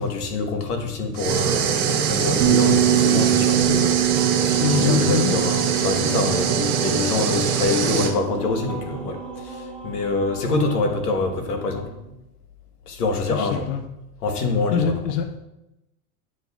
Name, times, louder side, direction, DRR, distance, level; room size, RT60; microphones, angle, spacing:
voice 1, 0.0-4.1 4.3-11.9 12.9-13.7 14.2-15.0, left 3 dB, 85° left, 4 dB, 1.4 m, -26 dB
sound 1, 1.2-8.1, right 7 dB, 35° right, 0.8 m, -23 dB
Bass guitar, 2.4-10.5, right 13 dB, 70° right, 0.9 m, -25 dB
sound 2, 4.1-11.7, equal, ahead, 0.6 m, -40 dB
voice 2, 4.6-5.4 13.3-13.8 14.7-15.4, left 8 dB, 50° left, 7 dB, 0.6 m, -24 dB
9.6 x 5.2 x 2.3 m, 0.90 s
supercardioid pair, 140°, 45 cm